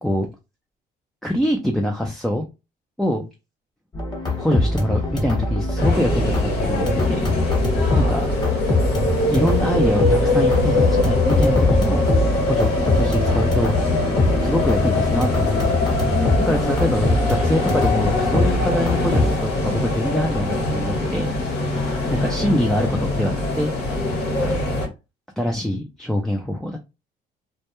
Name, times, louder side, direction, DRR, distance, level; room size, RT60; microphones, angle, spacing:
voice 1, 1.2-2.5 3.0-3.3 4.3-7.3 8.0-8.3 9.3-12.0 12.4-13.8 14.4-15.8 16.5-21.3 22.1-23.7 24.4-24.6 25.4-26.8, left 1 dB, ahead, 1 dB, 0.3 m, -24 dB
sound 1, 3.9-19.3, left 2 dB, 25° left, 1.0 m, -23 dB
sound 2, 5.8-24.9, left 2 dB, 75° left, 1.0 m, -23 dB
2.2 x 2.1 x 2.9 m, 0.26 s
cardioid pair, 110°, 17 cm